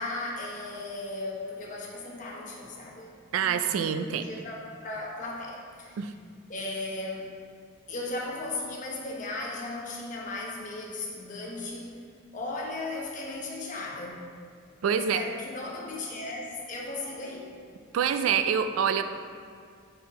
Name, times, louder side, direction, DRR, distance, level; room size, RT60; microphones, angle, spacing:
voice 1, 0.0-3.1 3.4-6.0 6.5-7.3 7.9-12.0 12.3-14.1 14.9-17.5, left 2 dB, 40° left, -2 dB, 0.8 m, -36 dB
voice 2, 3.3-4.3 6.0-6.1 14.8-15.2 17.9-19.0, right 7 dB, 85° right, 9 dB, 0.3 m, -26 dB
5.5 x 4.4 x 4.1 m, 2.1 s
head